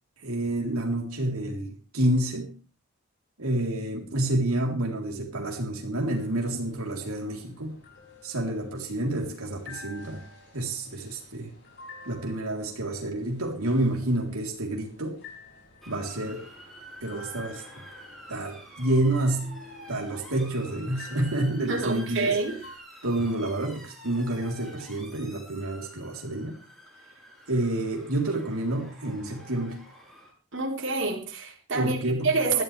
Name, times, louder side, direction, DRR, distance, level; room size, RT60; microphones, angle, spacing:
voice 1, 0.2-2.6 3.4-7.7 8.2-10.3 10.5-11.5 12.0-15.2 15.9-16.4 17.0-17.6 18.3-19.6 19.9-22.4 23.0-26.6 27.5-29.8 31.7-32.6, right 1 dB, 85° right, 0 dB, 3.6 m, -29 dB
sound 1, 6.1-22.8, left 3 dB, 50° left, 6.7 m, -50 dB
Motor vehicle (road) / Siren, 15.8-30.3, equal, ahead, 8.0 m, -48 dB
voice 2, 21.7-22.6 30.5-32.0 32.2-32.6, right 3 dB, 55° right, 0 dB, 4.1 m, -27 dB
21.0 x 14.0 x 3.4 m, 0.34 s
head